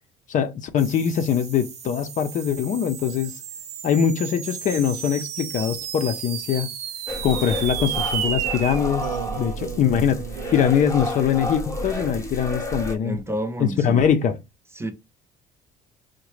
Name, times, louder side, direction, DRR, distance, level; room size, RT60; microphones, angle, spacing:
voice 1, 0.3-3.4 3.8-6.7 7.2-9.1 9.4-10.2 10.5-13.2 13.6-14.4, left 8 dB, 50° left, 0.5 m, -22 dB
sound 1, 0.8-8.3, right 6 dB, 40° right, 0.8 m, -41 dB
sound 2, 1.6-12.2, right 10 dB, 80° right, 0.5 m, -34 dB
sound 3, 7.1-13.0, equal, 15° left, 0.8 m, -31 dB
voice 2, 13.0-14.0 14.8-14.9, right 1 dB, 15° right, 0.5 m, -29 dB
3.8 x 2.1 x 3.0 m
cardioid pair, 110°, 17 cm